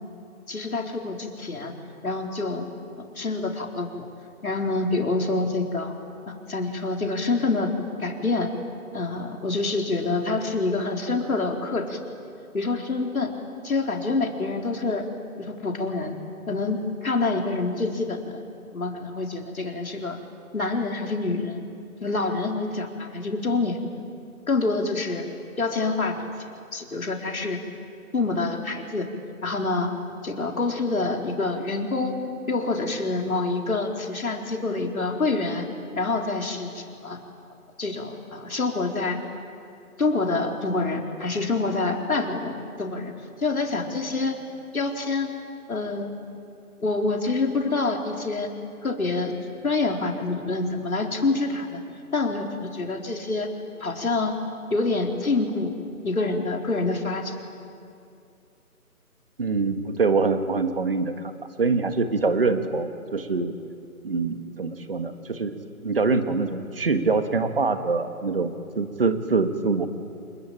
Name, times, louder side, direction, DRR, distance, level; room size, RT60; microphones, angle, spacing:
voice 1, 0.5-1.7 2.0-2.7 3.2-4.1 4.4-5.9 6.3-7.7 8.0-8.5 8.9-12.0 12.5-13.3 13.6-15.0 15.4-16.2 16.5-18.4 18.7-20.2 20.5-21.6 22.0-23.8 24.5-25.3 25.6-26.2 26.7-27.6 28.1-29.1 29.4-29.9 30.2-32.2 32.5-35.6 36.0-37.2 37.8-39.2 40.0-43.1 43.4-44.4 44.7-45.3 45.7-46.1 46.8-48.5 48.8-49.3 49.6-51.8 52.1-53.5 53.8-54.3 54.7-55.7 56.0-57.4, left 3 dB, 65° left, 2 dB, 4.2 m, -26 dB
voice 2, 59.4-63.5 64.0-69.9, right 4 dB, 40° right, 9 dB, 1.7 m, -24 dB
27.0 x 22.0 x 9.0 m, 2.5 s
figure-of-eight pair, 170°, 45 cm